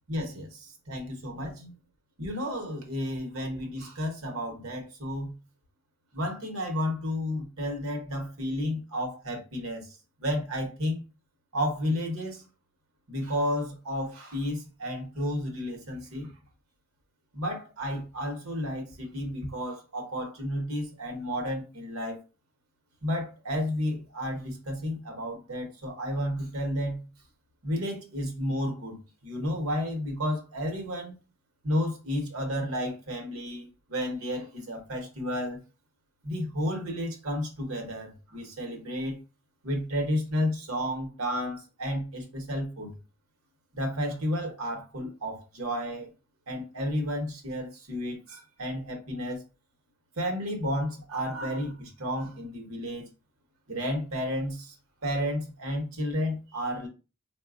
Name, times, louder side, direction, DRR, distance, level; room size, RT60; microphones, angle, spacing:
voice 1, 0.1-1.7 2.2-5.3 6.1-9.9 10.2-11.0 11.5-12.5 13.1-16.3 17.3-22.2 23.0-27.1 27.6-31.2 31.6-35.6 36.2-39.2 39.6-42.9 43.7-46.1 46.5-49.4 50.2-53.1 53.7-54.7 55.0-56.9, equal, 80° right, 1.0 m, -32 dB
4.0 x 2.3 x 2.4 m
head